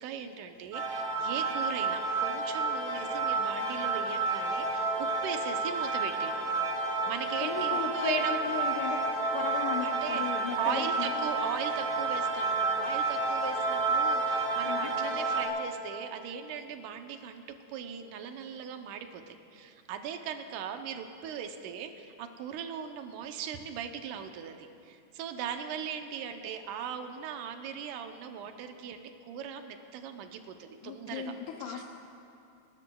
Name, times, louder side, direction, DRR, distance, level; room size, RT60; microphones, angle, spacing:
voice 1, 0.0-6.5 7.1-8.4 9.8-10.2 10.6-17.4 17.7-31.3 31.6-31.8, right 8 dB, 90° right, 6 dB, 2.3 m, -39 dB
sound 1, 0.7-15.5, right 3 dB, 35° right, 2.5 m, -30 dB
voice 2, 7.4-9.0 9.3-11.3 14.7-14.9 30.8-31.8, left 7 dB, 85° left, 1 dB, 2.2 m, -36 dB
27.0 x 12.5 x 2.3 m, 2.6 s
omnidirectional pair, 3.5 m